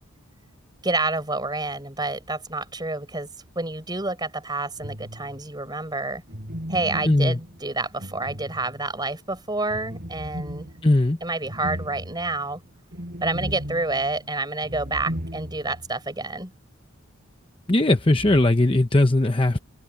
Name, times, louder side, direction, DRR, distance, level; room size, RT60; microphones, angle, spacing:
voice 1, 0.8-3.3 3.6-6.2 6.7-10.7 11.2-12.6 13.2-16.5, right 2 dB, 20° right, 6.1 m, -28 dB
sound 1, 4.8-5.5 6.3-9.0 9.7-15.9 16.2-16.3 18.1-18.5, equal, 45° right, 7.1 m, -36 dB
voice 2, 7.1-7.4 10.8-11.2 17.7-19.6, left 2 dB, 25° left, 0.9 m, -19 dB
head